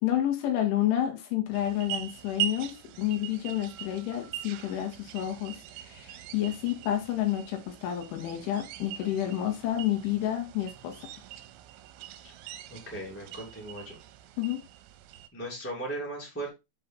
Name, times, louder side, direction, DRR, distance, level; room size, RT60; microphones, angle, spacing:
voice 1, 0.0-11.1 14.4-14.6, left 12 dB, 85° left, 3.9 m, -30 dB
sound 1, 1.5-15.3, right 12 dB, 85° right, 2.9 m, -41 dB
voice 2, 12.7-14.0 15.3-16.5, right 1 dB, 5° left, 1.6 m, -37 dB
7.7 x 4.2 x 4.0 m
omnidirectional pair, 5.4 m